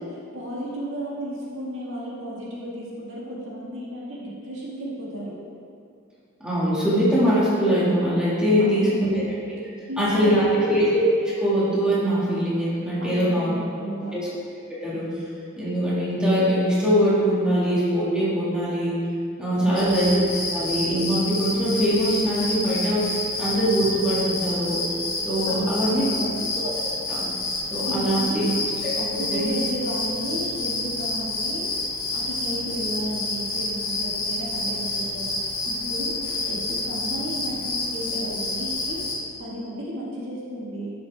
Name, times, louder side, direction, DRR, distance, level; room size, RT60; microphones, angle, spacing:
voice 1, 0.0-5.4 8.6-9.3 9.9-10.5 13.0-14.2 19.5-20.0 25.5-26.5 27.9-28.6 29.0-31.7 32.1-39.1 39.4-40.9, right 1 dB, 65° right, -5 dB, 1.9 m, -33 dB
voice 2, 6.4-9.2 9.5-9.6 10.0-11.0 11.4-13.5 14.1-14.3 14.7-15.1 15.6-19.0 19.4-20.1 20.5-24.9 25.2-26.1 26.6-26.7 27.1-27.3 27.7-28.4 29.1-29.5, equal, 5° right, -9 dB, 2.1 m, -22 dB
sound 1, 19.7-39.1, left 2 dB, 20° left, 2.4 m, -29 dB
12.0 x 6.4 x 3.5 m, 2.3 s
head